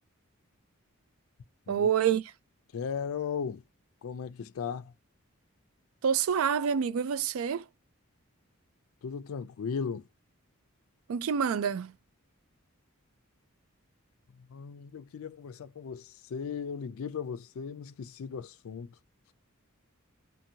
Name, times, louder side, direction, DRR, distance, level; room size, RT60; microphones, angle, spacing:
voice 1, 1.7-2.2 6.0-7.6 11.1-11.9, right 7 dB, 80° right, 0.4 m, -27 dB
voice 2, 2.7-3.6 4.0-4.9 9.0-10.0 14.5-18.9, left 6 dB, 75° left, 0.4 m, -37 dB
2.7 x 2.5 x 2.7 m
head